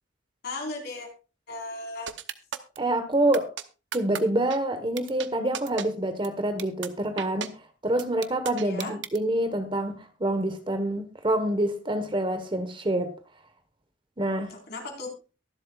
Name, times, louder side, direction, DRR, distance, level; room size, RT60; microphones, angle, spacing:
voice 1, 0.4-1.1 1.5-2.1 8.6-8.9 14.5-15.1, left 2 dB, 60° left, 4.4 m, -36 dB
sound 1, 2.1-2.8 3.3-3.6 3.9-4.2 4.5-4.6 5.0-5.3 5.5-5.9 6.2-6.3 6.6-6.9 7.2-7.5 8.0-9.2, right 8 dB, 65° right, 0.8 m, -34 dB
voice 2, 2.8-3.5 3.9-7.5 7.8-13.1 14.2-14.5, right 1 dB, 25° right, 1.3 m, -26 dB
23.0 x 7.7 x 2.4 m
head